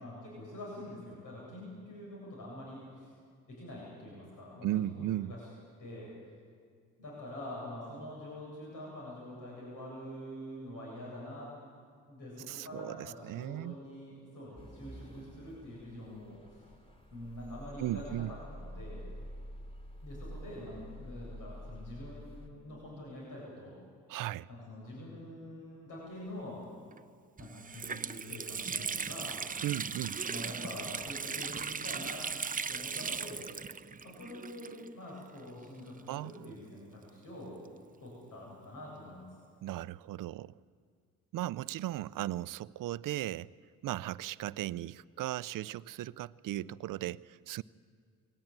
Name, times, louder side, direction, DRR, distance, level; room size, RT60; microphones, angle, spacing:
voice 1, 0.0-3.1 3.5-4.7 4.9-5.4 5.8-6.1 7.0-11.5 12.1-16.6 17.1-19.0 20.0-23.7 24.5-26.6 27.4-29.4 30.2-32.2 32.7-33.4 34.0-37.6 38.0-39.3, left 1 dB, 70° left, -4 dB, 8.0 m, -45 dB
voice 2, 4.6-5.3 12.5-13.8 17.8-18.3 24.1-24.5 29.6-30.2 36.1-36.5 39.6-40.5 41.3-43.5 43.8-47.6, right 14 dB, 70° right, 19 dB, 0.6 m, -36 dB
sound 1, 14.6-22.5, equal, 15° left, 3.2 m, -48 dB
Water tap faucet, 26.9-27.0 27.4-35.1 35.4-35.5 36.3-37.9, right 5 dB, 25° right, 0.6 m, -38 dB
21.5 x 18.5 x 8.9 m, 2.1 s
supercardioid pair, 65°, 33 cm